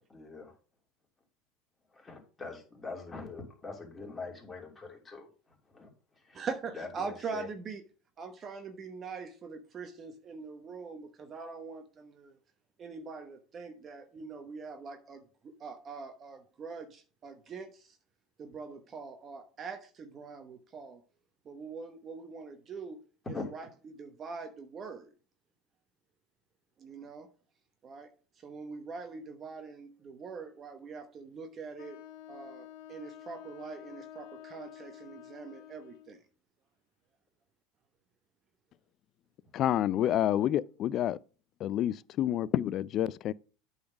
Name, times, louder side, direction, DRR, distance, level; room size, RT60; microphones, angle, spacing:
voice 1, 0.1-0.5 1.9-5.9 6.2-6.4 6.7-7.5 23.3-23.5, left 3 dB, 15° left, 2.9 m, -43 dB
voice 2, 6.3-7.8 8.2-12.4 12.8-15.2 15.6-17.8 18.4-21.0 21.5-23.0 23.5-23.7 24.0-25.1 26.8-27.3 27.8-28.1 28.4-32.0 32.3-36.2, right 5 dB, 35° right, 1.0 m, -43 dB
Wind instrument woodwind instrument, 31.8-36.2, left 11 dB, 85° left, 1.2 m, -49 dB
voice 3, 39.5-41.2 41.6-43.3, left 11 dB, 45° left, 0.4 m, -28 dB
8.5 x 4.0 x 6.0 m
supercardioid pair, 110°, 0 cm